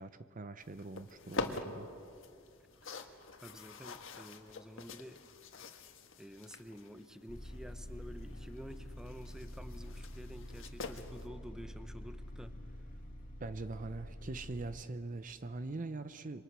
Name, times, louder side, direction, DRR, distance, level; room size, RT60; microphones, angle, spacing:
voice 1, 0.0-1.9 13.4-16.4, right 3 dB, 40° right, 11 dB, 0.7 m, -42 dB
sound 1, 0.6-11.3, left 3 dB, 70° left, 1.5 m, -46 dB
voice 2, 3.4-5.2 6.2-12.5, equal, 5° right, 9 dB, 0.9 m, -50 dB
sound 2, 7.3-14.8, left 1 dB, 40° left, 2.2 m, -47 dB
28.0 x 25.0 x 6.2 m, 2.4 s
head